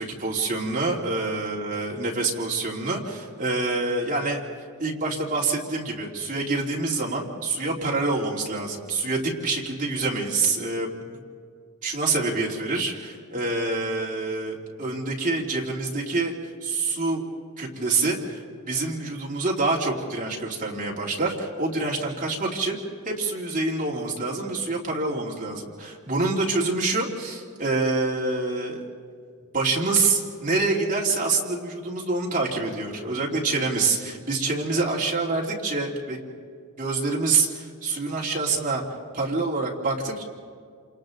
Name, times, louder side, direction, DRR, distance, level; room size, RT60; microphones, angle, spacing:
voice 1, 0.0-4.4 4.8-11.0 11.8-16.3 16.6-17.2 17.6-22.8 23.0-28.9 29.5-36.2 36.8-38.8 39.1-40.2, right 3 dB, 35° right, -3 dB, 3.0 m, -26 dB
28.0 x 27.5 x 3.9 m, 2.1 s
head